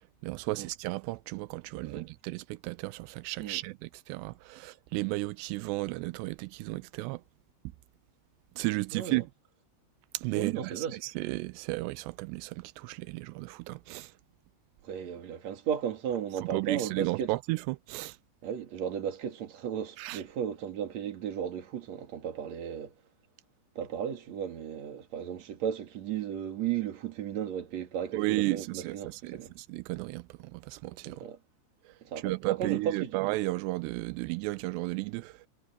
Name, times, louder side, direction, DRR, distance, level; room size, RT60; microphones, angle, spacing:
voice 1, 0.2-7.2 8.6-9.3 10.1-14.1 16.5-18.2 20.0-20.2 28.1-31.3 31.9-32.0 32.2-35.5, right 21 dB, 90° right, 2.8 m, -34 dB
voice 2, 8.9-9.2 10.3-11.0 14.8-17.3 18.4-22.9 23.8-29.5 31.0-31.4 32.0-33.2, right 9 dB, 50° right, 3.0 m, -35 dB
omnidirectional pair, 4.8 m